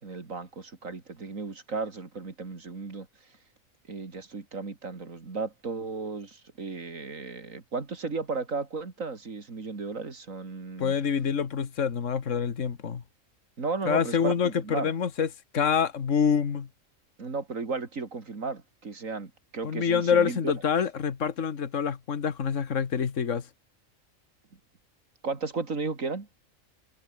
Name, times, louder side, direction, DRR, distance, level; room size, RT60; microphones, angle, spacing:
voice 1, 0.0-3.1 3.9-10.9 13.6-14.9 17.2-20.5 25.2-26.3, right 4 dB, 90° right, 3.2 m, -34 dB
voice 2, 10.8-13.0 13.9-15.3 15.5-16.7 19.6-23.5, left 7 dB, 70° left, 1.8 m, -26 dB
omnidirectional pair, 1.3 m